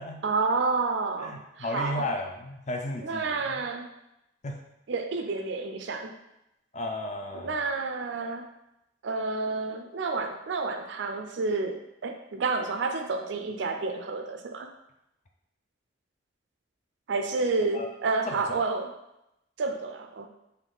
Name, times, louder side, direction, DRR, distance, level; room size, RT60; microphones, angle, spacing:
voice 1, 0.2-2.0 3.0-3.9 4.9-6.2 7.3-8.5 9.0-14.7 17.1-18.9 19.6-20.3, right 3 dB, 65° right, 5 dB, 0.4 m, -30 dB
voice 2, 1.2-3.6 4.4-4.6 6.7-7.6 17.7-17.9 18.3-18.4, left 1 dB, 35° left, 3 dB, 0.5 m, -34 dB
3.5 x 2.7 x 3.8 m, 0.86 s
head